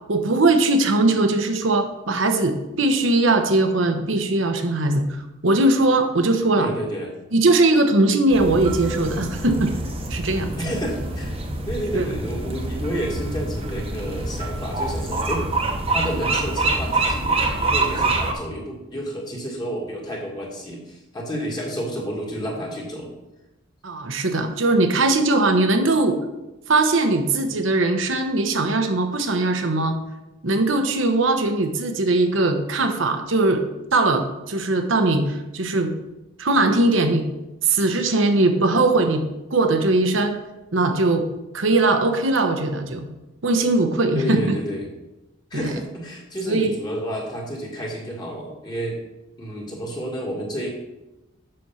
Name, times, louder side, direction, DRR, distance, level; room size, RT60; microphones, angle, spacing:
voice 1, 0.1-6.7 7.3-9.7 10.1-10.5 11.9-12.1 23.8-26.2 26.7-30.0 30.4-33.6 33.9-35.9 36.4-37.2 37.6-39.2 39.5-40.4 40.7-41.3 41.5-43.1 43.4-44.6 45.5-45.7 46.5-46.7, right 2 dB, 70° right, 6 dB, 1.0 m, -20 dB
voice 2, 6.6-7.1 10.6-11.4 11.6-15.5 15.9-23.1 24.2-24.3 44.1-44.9 45.5-49.0 49.4-50.7, equal, 20° left, -2 dB, 1.7 m, -30 dB
sound 1, 8.3-18.3, right 2 dB, 25° right, 1.0 m, -26 dB
7.7 x 6.1 x 5.7 m, 1.0 s
head